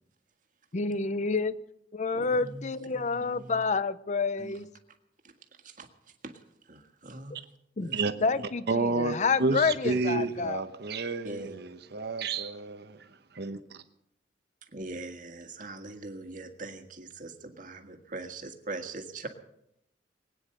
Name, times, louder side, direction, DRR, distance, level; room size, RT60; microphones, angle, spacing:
voice 1, 0.7-1.5 1.9-4.7 7.8-7.9 8.2-10.6, left 4 dB, 40° left, 0.6 m, -28 dB
voice 2, 2.1-3.6 4.4-4.6 5.6-5.9 6.2-6.3 6.6-7.4 7.8-8.4 9.5-10.3 11.2-11.6 14.7-19.3, right 2 dB, 50° right, 1.7 m, -42 dB
voice 3, 8.7-13.1 13.3-13.6, right 3 dB, 65° right, 1.0 m, -30 dB
20.5 x 9.5 x 6.6 m
head